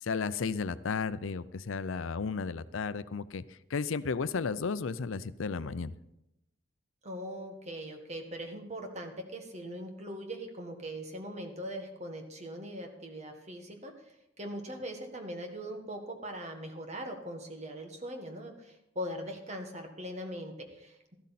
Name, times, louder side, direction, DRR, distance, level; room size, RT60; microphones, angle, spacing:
voice 1, 0.0-3.4 3.7-5.9, left 5 dB, 85° left, 15 dB, 0.5 m, -33 dB
voice 2, 7.0-21.2, equal, 35° right, 4 dB, 1.6 m, -41 dB
13.0 x 12.5 x 4.2 m, 0.85 s
head